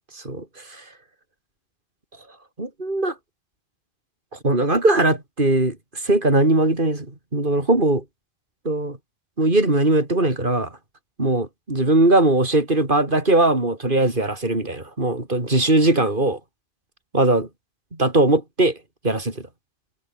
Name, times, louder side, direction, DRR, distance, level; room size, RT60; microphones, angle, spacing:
voice 1, 0.1-0.8 2.6-3.1 4.4-7.1 7.3-8.0 8.6-9.0 9.4-10.7 11.2-16.4 17.1-17.5 18.0-18.8 19.0-19.4, right 2 dB, 55° right, 4.8 m, -20 dB
omnidirectional pair, 1.0 m